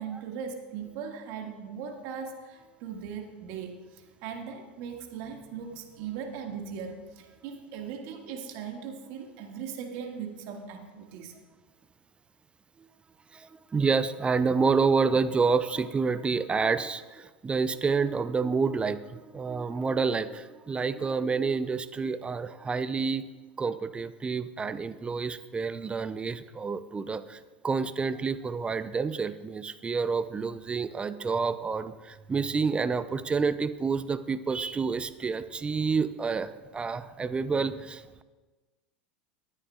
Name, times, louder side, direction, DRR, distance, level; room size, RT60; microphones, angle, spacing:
voice 1, 0.0-11.3, right 7 dB, 60° right, 2 dB, 1.9 m, -39 dB
voice 2, 13.3-23.2 23.6-38.2, right 5 dB, 20° right, 13 dB, 0.6 m, -28 dB
19.0 x 9.9 x 2.4 m, 1.2 s
hypercardioid pair, 95°, 6 cm